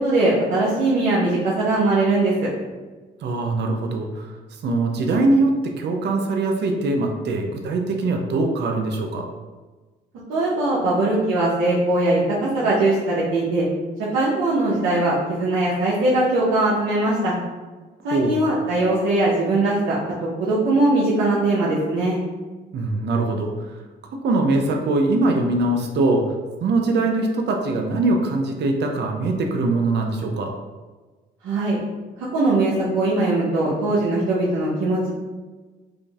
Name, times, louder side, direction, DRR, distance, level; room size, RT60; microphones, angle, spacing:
voice 1, 0.0-2.3 10.3-13.6 14.1-17.3 18.0-20.0 20.4-22.2 31.4-31.8 32.3-35.1, right 2 dB, 90° right, -8 dB, 0.8 m, -20 dB
voice 2, 3.2-4.4 4.6-9.3 18.1-18.4 22.7-23.8 24.2-26.4 26.6-30.5, right 2 dB, 60° right, 3 dB, 0.5 m, -22 dB
5.0 x 2.6 x 2.4 m, 1.3 s
cardioid pair, 90°, 20 cm